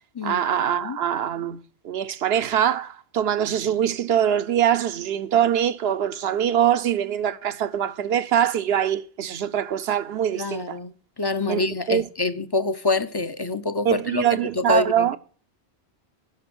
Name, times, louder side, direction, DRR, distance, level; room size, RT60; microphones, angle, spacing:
voice 1, 0.2-10.8 11.5-12.1 13.8-15.2, right 9 dB, 70° right, 0.9 m, -23 dB
voice 2, 10.3-15.2, left 3 dB, 30° left, 0.5 m, -26 dB
10.5 x 6.0 x 7.9 m
omnidirectional pair, 1.1 m